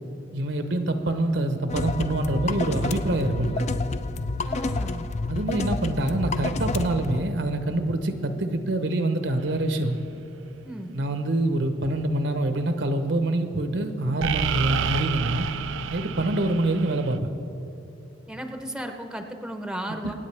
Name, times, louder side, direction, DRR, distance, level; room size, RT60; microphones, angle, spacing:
voice 1, 0.3-3.7 5.3-10.0 10.9-15.5 15.9-17.3 20.0-20.1, right 1 dB, 70° right, 7 dB, 0.9 m, -25 dB
sound 1, 1.7-7.2, left 3 dB, 40° left, 0.4 m, -29 dB
voice 2, 4.4-5.1 10.6-10.9 18.3-20.1, equal, 5° right, 4 dB, 0.7 m, -35 dB
sound 2, 9.4-9.6 14.2-17.2, right 7 dB, 90° right, 0.4 m, -29 dB
24.5 x 9.1 x 3.4 m, 2.8 s
head